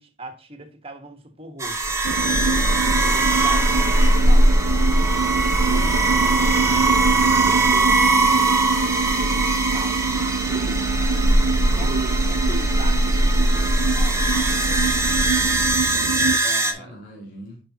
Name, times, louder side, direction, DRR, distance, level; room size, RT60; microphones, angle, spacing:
voice 1, 0.0-4.5 5.0-6.0 6.3-7.0 7.4-8.6 9.0-10.0 10.5-10.9 11.6-14.8 16.4-17.0, right 1 dB, 30° right, 6 dB, 1.4 m, -40 dB
sound 1, 1.6-16.7, right 2 dB, 15° right, 1.0 m, -20 dB
sound 2, 2.0-16.4, right 5 dB, 85° right, 0.4 m, -26 dB
voice 2, 11.4-11.9 16.8-17.6, equal, 50° left, -4 dB, 2.7 m, -43 dB
10.0 x 5.0 x 2.9 m, 0.34 s
head